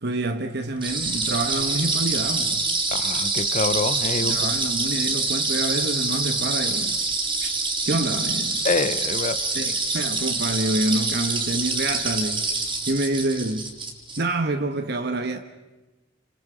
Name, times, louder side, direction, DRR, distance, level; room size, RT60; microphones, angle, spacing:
voice 1, 0.0-2.6 4.2-7.0 7.4-7.6 7.9-8.7 9.5-12.5 12.9-13.7 14.2-15.4, right 2 dB, 65° right, 1.3 m, -27 dB
sound 1, 0.8-14.2, right 3 dB, 30° right, 3.6 m, -26 dB
voice 2, 2.9-4.4 8.6-9.4, left 3 dB, 40° left, 0.8 m, -26 dB
29.5 x 26.5 x 5.1 m
head